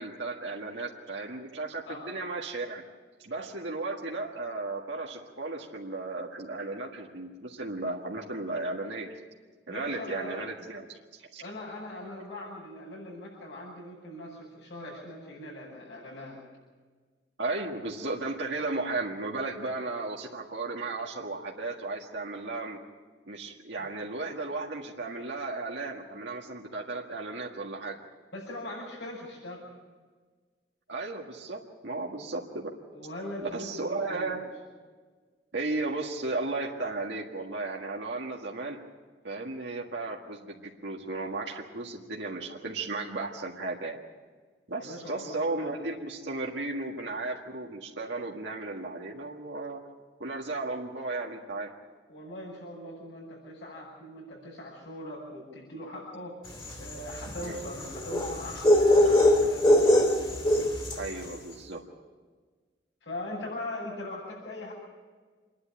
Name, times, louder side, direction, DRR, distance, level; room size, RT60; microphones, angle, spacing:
voice 1, 0.0-2.8 3.2-9.1 9.7-11.4 17.4-22.8 23.3-28.0 30.9-32.7 33.4-34.4 35.5-38.8 39.2-44.0 44.7-49.8 50.2-51.7 57.4-57.6 61.0-61.8, right 3 dB, 90° right, -1 dB, 1.8 m, -35 dB
voice 2, 9.7-10.5 11.4-16.4 23.8-23.9 28.3-29.7 32.9-34.4 44.8-45.7 52.1-56.4 56.8-59.9 63.0-64.7, left 1 dB, 80° left, -8 dB, 6.8 m, -41 dB
sound 1, 56.6-61.1, left 1 dB, 30° left, 2.7 m, -22 dB
27.0 x 11.0 x 9.0 m, 1.5 s
head